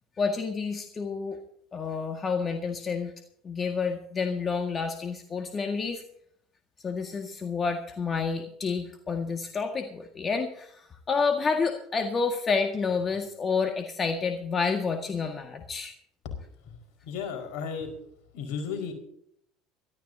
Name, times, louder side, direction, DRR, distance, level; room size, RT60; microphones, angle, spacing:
voice 1, 0.2-1.4 1.7-3.1 3.4-6.0 6.8-15.9, left 5 dB, 30° left, 4 dB, 1.9 m, -29 dB
voice 2, 17.0-17.9 18.3-18.9, left 6 dB, 65° left, 4 dB, 5.0 m, -34 dB
23.5 x 13.5 x 2.8 m, 0.67 s
hypercardioid pair, 75°, 0 cm